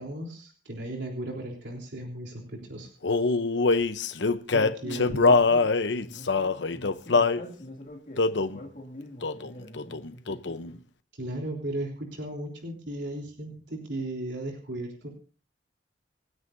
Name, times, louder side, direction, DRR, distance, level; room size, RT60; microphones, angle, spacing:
voice 1, 0.0-2.9 4.5-5.4 11.1-15.1, right 1 dB, 90° right, 0 dB, 3.5 m, -36 dB
Male singing, 3.0-7.4 8.2-8.6 9.2-9.5 9.8-10.7, left 3 dB, 85° left, 0.8 m, -24 dB
voice 2, 4.5-10.8, left 1 dB, 50° left, 0 dB, 2.2 m, -45 dB
27.0 x 9.8 x 2.6 m, 0.39 s
head